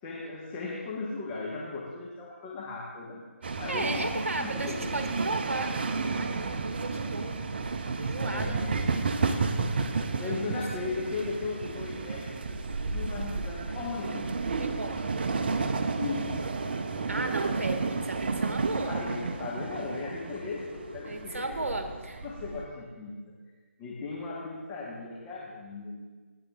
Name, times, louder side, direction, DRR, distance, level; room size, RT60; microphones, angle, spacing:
voice 1, 0.0-3.2 3.6-5.0 8.2-8.7 9.2-9.7 10.2-12.4 12.8-14.4 16.0-16.6 18.8-21.8 22.2-23.4 23.8-26.2, left 3 dB, 15° left, -5 dB, 1.2 m, -37 dB
sound 1, 3.4-22.7, right 4 dB, 40° right, 0.6 m, -32 dB
voice 2, 3.5-7.5 8.0-8.6 10.2-10.5 10.8-11.0 14.6-15.1 17.1-19.0 21.0-22.3, right 2 dB, 65° right, 6 dB, 1.2 m, -35 dB
17.5 x 8.6 x 2.4 m, 1.4 s
figure-of-eight pair, 150°, 8 cm